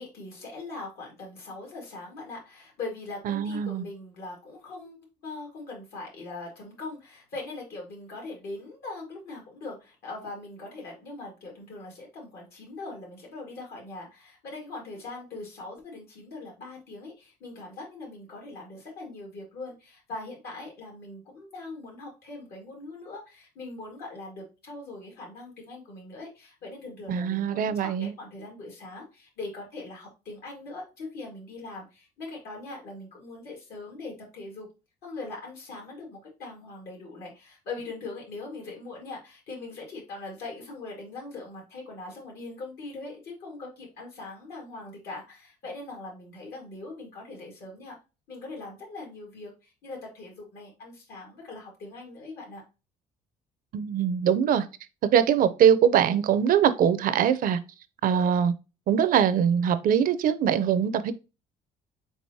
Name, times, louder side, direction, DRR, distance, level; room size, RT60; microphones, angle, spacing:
voice 1, 0.0-5.0 5.2-34.7 35.0-48.0 48.3-52.6, left 3 dB, 70° left, 1.9 m, -41 dB
voice 2, 3.3-3.9 27.1-28.1 53.7-54.7 55.1-57.6 58.0-58.5 58.9-61.1, right 8 dB, 55° right, 0.5 m, -22 dB
4.7 x 4.0 x 2.7 m
cardioid pair, 110°, 17 cm